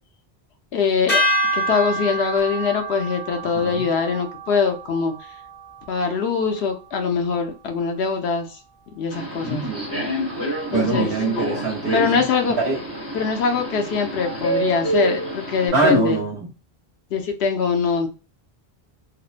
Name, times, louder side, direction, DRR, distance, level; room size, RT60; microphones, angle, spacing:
voice 1, 0.7-1.2 1.5-5.1 5.9-8.6 9.0-9.6 10.7-11.1 11.9-12.6 13.1-16.2 17.1-18.1, left 5 dB, 80° left, 4 dB, 0.9 m, -22 dB
sound 1, 1.1-7.4, equal, 60° left, 1.3 m, -28 dB
voice 2, 3.5-3.9 9.4-9.9 10.7-12.2 12.6-12.8 15.7-16.5, right 3 dB, 60° right, -3 dB, 1.0 m, -23 dB
Subway metro underground, 9.1-15.7, right 1 dB, 25° left, 1.2 m, -28 dB
3.0 x 2.1 x 2.3 m, 0.32 s
omnidirectional pair, 1.1 m